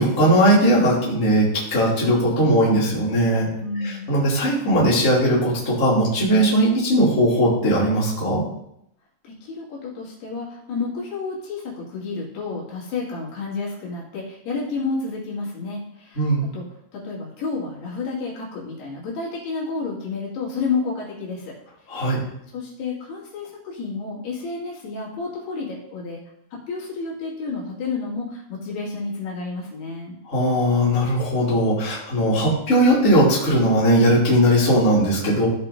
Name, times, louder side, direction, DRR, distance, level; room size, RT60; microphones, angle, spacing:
voice 1, 0.0-3.5 3.8-8.4 16.1-16.4 21.9-22.2 30.3-35.5, equal, 20° left, -7 dB, 2.9 m, -19 dB
voice 2, 3.6-4.0 9.2-16.3 16.5-16.6 16.9-21.5 22.5-26.2 26.7-30.2, left 4 dB, 80° left, -5 dB, 4.5 m, -30 dB
16.0 x 5.4 x 2.8 m, 0.76 s
omnidirectional pair, 4.5 m